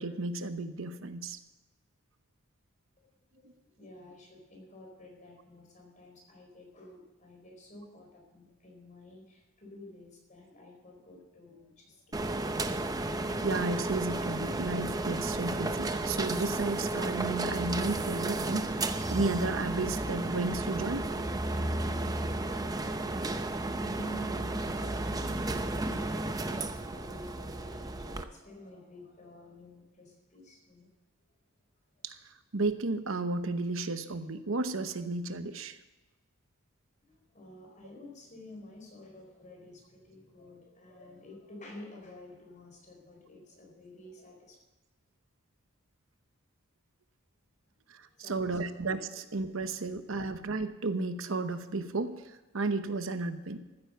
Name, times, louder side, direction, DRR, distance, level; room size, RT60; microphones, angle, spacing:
voice 1, 0.0-1.4 13.4-21.1 32.0-32.1 32.5-35.8 47.9-53.6, right 3 dB, 70° right, 10 dB, 0.9 m, -33 dB
voice 2, 3.0-12.5 23.9-30.9 37.0-44.6 48.0-48.7, left 1 dB, 35° left, 0 dB, 4.5 m, -50 dB
sound 1, 12.1-28.2, right 2 dB, 20° right, 0.7 m, -33 dB
14.0 x 9.7 x 6.8 m, 1.1 s
head